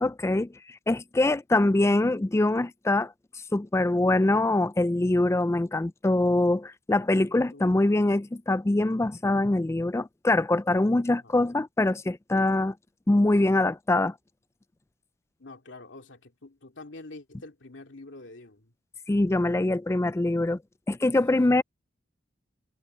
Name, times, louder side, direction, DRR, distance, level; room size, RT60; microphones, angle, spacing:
voice 1, 0.0-3.1 3.5-12.7 13.1-14.1 19.1-20.6 20.9-21.6, left 2 dB, 15° left, 0.3 m, -24 dB
voice 2, 11.1-11.6 15.4-18.7 21.5-21.6, left 2 dB, 75° left, 2.4 m, -46 dB
head